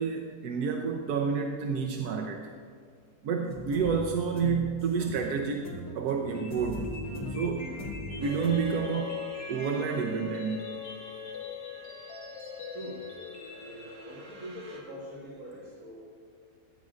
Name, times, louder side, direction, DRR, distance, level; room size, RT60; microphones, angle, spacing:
voice 1, 0.0-2.5 3.2-5.7 5.9-6.9 7.3-7.8 8.2-10.7, right 6 dB, 90° right, 2 dB, 1.2 m, -30 dB
sound 1, 3.4-8.7, left 1 dB, 65° left, 2.8 m, -39 dB
sound 2, 6.3-14.3, left 3 dB, 85° left, 1.8 m, -44 dB
sound 3, 8.2-14.8, left 7 dB, 70° right, 2.3 m, -42 dB
voice 2, 12.7-13.0 13.5-15.9, equal, 55° right, -7 dB, 2.2 m, -43 dB
15.0 x 9.3 x 2.5 m, 2.1 s
omnidirectional pair, 1.6 m